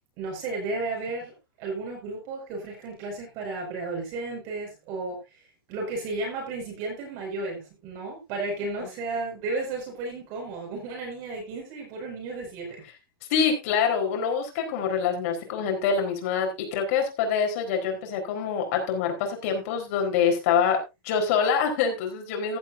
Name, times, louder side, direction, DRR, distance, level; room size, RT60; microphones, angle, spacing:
voice 1, 0.2-1.3 1.6-5.4 5.7-12.7, right 3 dB, 30° right, 0 dB, 5.4 m, -33 dB
voice 2, 13.3-20.8 21.0-22.6, left 6 dB, 35° left, 3 dB, 4.3 m, -25 dB
16.0 x 10.5 x 2.7 m, 0.25 s
supercardioid pair, 175°, 12 cm